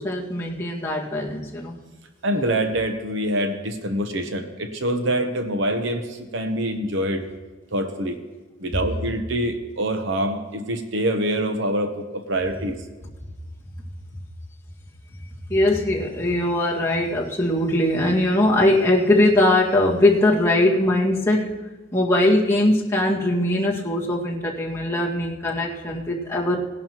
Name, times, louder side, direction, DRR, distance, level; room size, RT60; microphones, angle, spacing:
voice 1, 0.0-1.8 15.5-21.5 21.9-26.6, left 1 dB, 15° left, -6 dB, 1.9 m, -21 dB
voice 2, 2.2-7.2 7.7-8.2 8.6-12.7, right 1 dB, 70° right, 7 dB, 1.0 m, -25 dB
19.5 x 11.0 x 3.0 m, 1.2 s
head